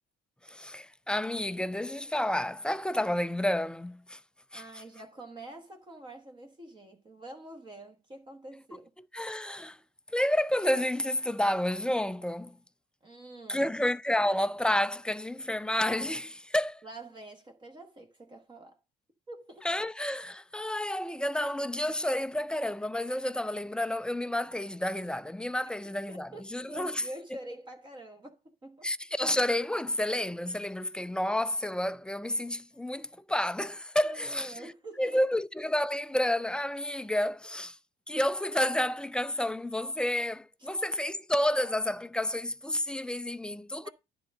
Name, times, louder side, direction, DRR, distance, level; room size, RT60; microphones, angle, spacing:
voice 1, 0.5-4.2 4.5-4.6 9.1-9.8 10.1-12.6 13.5-16.8 19.6-27.0 28.8-34.7 35.0-37.8 38.1-43.9, left 1 dB, 5° left, 0.4 m, -30 dB
voice 2, 4.5-8.9 13.0-13.7 16.8-18.8 19.3-19.7 25.7-28.9 34.0-35.2 40.6-40.8 43.8-43.9, right 1 dB, 25° right, 1.2 m, -46 dB
10.5 x 3.6 x 6.3 m
cardioid pair, 110°, 17 cm